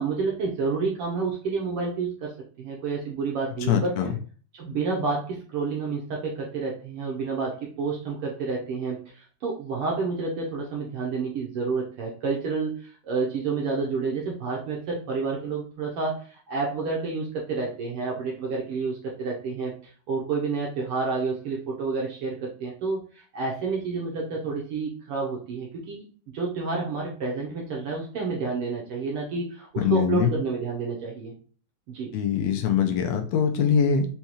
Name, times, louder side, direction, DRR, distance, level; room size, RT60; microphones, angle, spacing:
voice 1, 0.0-2.3 2.6-4.0 4.5-19.7 20.1-26.0 26.3-31.3 31.9-32.1, right 4 dB, 75° right, -2 dB, 1.3 m, -29 dB
voice 2, 3.7-4.1 29.8-30.3 32.1-34.1, left 7 dB, 80° left, 4 dB, 1.6 m, -23 dB
5.4 x 2.3 x 3.0 m, 0.41 s
omnidirectional pair, 3.4 m